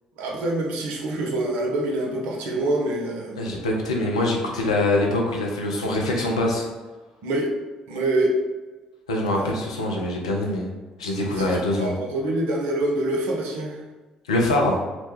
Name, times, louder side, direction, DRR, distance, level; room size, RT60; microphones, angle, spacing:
voice 1, 0.2-3.5 7.2-7.5 7.9-8.3 9.3-9.7 11.4-13.8, right 1 dB, 70° right, -1 dB, 0.6 m, -26 dB
voice 2, 3.4-6.7 9.1-10.7 11.0-11.9 14.3-14.8, left 1 dB, 85° left, -1 dB, 0.4 m, -23 dB
2.9 x 2.1 x 3.2 m, 1.2 s
figure-of-eight pair, 50°, 3 cm